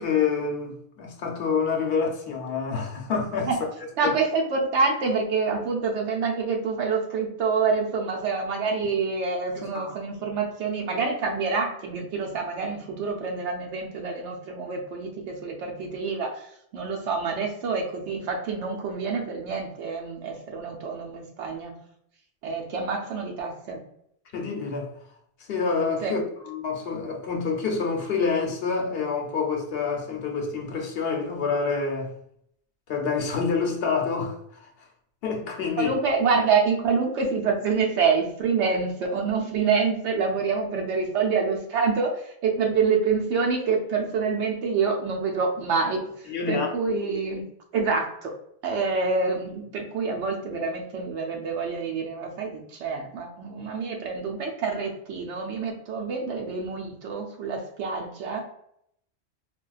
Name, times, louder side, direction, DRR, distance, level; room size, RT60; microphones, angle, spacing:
voice 1, 0.0-3.5 4.0-4.1 9.5-10.0 24.3-24.9 25.5-32.1 32.9-34.4 35.2-35.9 46.3-46.7, left 5 dB, 65° left, 0.9 m, -27 dB
voice 2, 4.0-16.5 16.7-21.8 22.4-23.8 26.0-26.1 35.8-46.0 46.5-47.4 47.7-48.3 48.6-58.4, right 5 dB, 90° right, 0.9 m, -27 dB
4.0 x 2.2 x 2.3 m
omnidirectional pair, 1.1 m